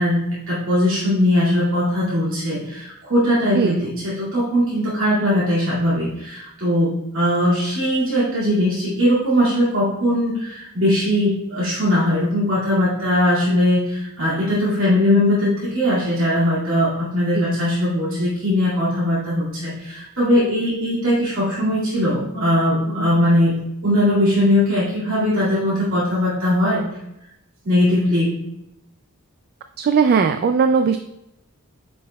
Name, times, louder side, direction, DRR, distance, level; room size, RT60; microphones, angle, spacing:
voice 1, 0.0-23.6 23.8-26.8 27.6-28.3, left 1 dB, 65° right, -9 dB, 2.3 m, -20 dB
voice 2, 29.8-31.0, right 5 dB, 45° right, 7 dB, 0.3 m, -18 dB
8.6 x 5.4 x 2.3 m, 0.83 s
head